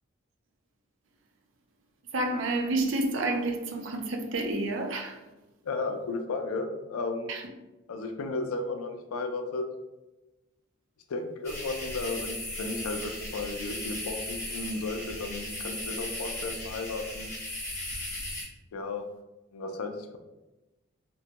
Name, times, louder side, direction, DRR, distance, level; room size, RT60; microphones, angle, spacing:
voice 1, 2.1-5.2 7.3-7.4, right 2 dB, 65° right, 0.4 m, -29 dB
voice 2, 5.6-7.3 7.9-9.6 11.1-17.3 18.7-19.0 19.5-20.2, left 3 dB, 90° left, 0.4 m, -34 dB
sound 1, 11.4-18.4, left 1 dB, 15° left, 0.8 m, -37 dB
2.9 x 2.1 x 2.8 m
head